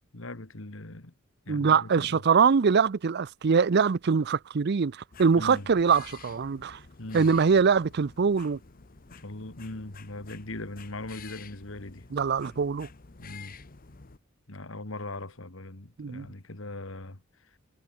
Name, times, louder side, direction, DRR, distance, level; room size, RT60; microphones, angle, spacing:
voice 1, 0.1-1.1 1.5-2.2 5.4-5.7 7.0-7.3 9.1-12.1 13.2-13.6 14.5-17.2, left 2 dB, 70° left, 2.2 m, -40 dB
voice 2, 1.5-6.8 7.1-8.6 12.1-12.9 16.0-16.3, right 5 dB, 55° right, 0.5 m, -23 dB
sound 1, 5.1-14.2, left 5 dB, 45° left, 1.0 m, -50 dB
head